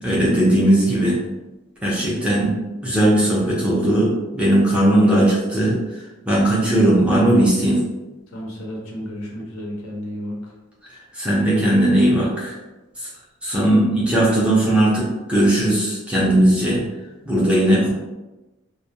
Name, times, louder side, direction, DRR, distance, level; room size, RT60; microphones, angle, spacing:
voice 1, 0.0-1.2 1.8-2.5 2.8-5.7 6.3-7.8 11.2-12.5 13.4-16.8 17.3-17.9, right 1 dB, 5° right, -6 dB, 0.4 m, -18 dB
voice 2, 8.3-10.5, equal, 75° left, -2 dB, 0.7 m, -33 dB
2.2 x 2.1 x 2.7 m, 1.1 s
head